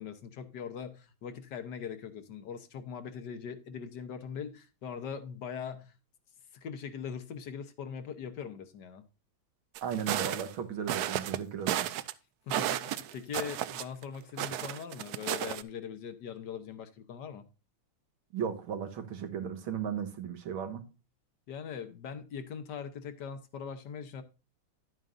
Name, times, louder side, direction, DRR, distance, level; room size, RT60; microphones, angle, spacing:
voice 1, 0.0-5.9 6.5-9.0 12.5-17.4 21.5-24.2, left 7 dB, 60° left, 1.4 m, -41 dB
sound 1, 9.7-10.5 10.9-11.4 11.7-12.1 12.5-14.0 14.4-15.6, right 12 dB, 75° right, 0.9 m, -33 dB
voice 2, 9.8-11.9 18.3-20.9, right 7 dB, 90° right, 2.2 m, -36 dB
11.0 x 9.1 x 2.5 m
omnidirectional pair, 2.2 m